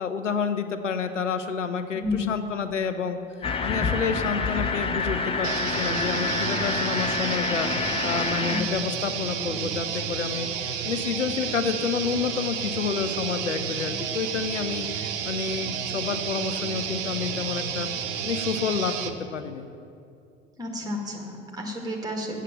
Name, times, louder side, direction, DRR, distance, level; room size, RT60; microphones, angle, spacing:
voice 1, 0.0-17.9 18.2-19.7, left 6 dB, 80° left, 9 dB, 0.6 m, -29 dB
sound 1, 3.4-8.6, left 4 dB, 15° left, 0.6 m, -27 dB
sound 2, 5.4-19.1, right 8 dB, 50° right, 0.7 m, -31 dB
voice 2, 20.6-22.4, left 1 dB, 10° right, 1 dB, 1.8 m, -31 dB
8.1 x 7.5 x 7.4 m, 2.5 s
figure-of-eight pair, 75°, 36 cm